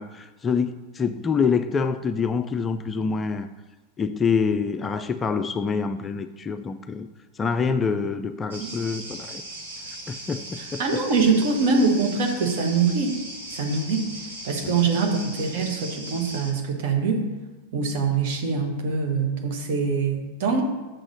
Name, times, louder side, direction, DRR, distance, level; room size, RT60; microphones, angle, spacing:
voice 1, 0.0-3.5 4.0-7.1 7.4-9.4 10.1-10.8 14.6-14.7, left 5 dB, 20° left, 10 dB, 0.3 m, -26 dB
sound 1, 8.5-16.5, right 1 dB, 65° right, 1.8 m, -38 dB
voice 2, 10.8-13.2 13.5-14.1 14.4-17.3 17.7-20.6, right 4 dB, 50° right, 2 dB, 1.3 m, -23 dB
6.8 x 4.0 x 6.3 m, 1.2 s
figure-of-eight pair, 90°, 0 cm